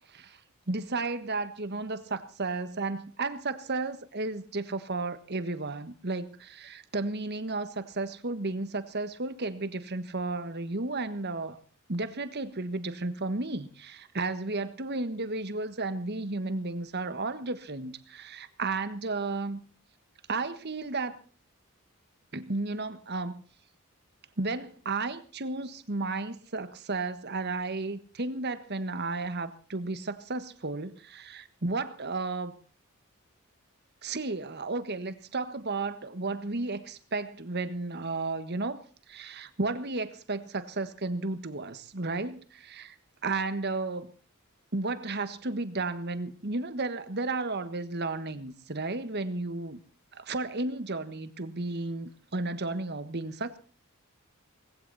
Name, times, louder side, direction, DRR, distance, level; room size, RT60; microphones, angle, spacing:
voice 1, 0.7-11.6 11.9-19.6 20.3-21.2 22.3-23.4 24.4-32.5 34.0-38.8 39.1-43.0 43.2-44.1 44.7-49.8 50.1-53.6, right 3 dB, 50° right, 12 dB, 1.4 m, -33 dB
19.5 x 16.0 x 4.1 m, 0.40 s
head